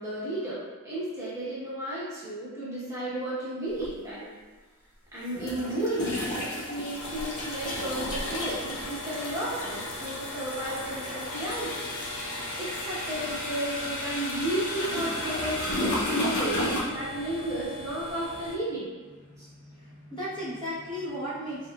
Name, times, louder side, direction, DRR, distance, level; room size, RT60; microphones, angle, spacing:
voice 1, 0.0-4.3 5.1-11.9 12.2-18.9 19.4-19.5, right 1 dB, 15° right, -10 dB, 1.1 m, -33 dB
sound 1, 3.8-3.9 5.3-16.8, left 1 dB, 70° left, 0.9 m, -33 dB
sound 2, 6.9-18.6, left 1 dB, 40° left, 0.4 m, -42 dB
voice 2, 19.3-21.7, equal, 20° left, -9 dB, 1.1 m, -36 dB
5.1 x 3.5 x 2.4 m, 1.4 s
head